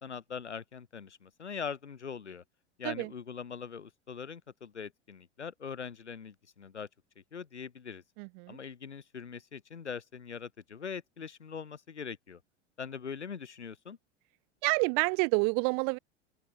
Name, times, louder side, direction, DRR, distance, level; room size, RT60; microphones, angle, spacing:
voice 1, 0.0-2.4 2.8-6.9 7.2-8.0 8.5-12.4 12.8-14.0, left 6 dB, 75° left, 7.4 m, -42 dB
voice 2, 8.2-8.6 14.6-16.0, right 40 dB or more, 45° right, 1.0 m, -28 dB
open air
figure-of-eight pair, 85°, 34 cm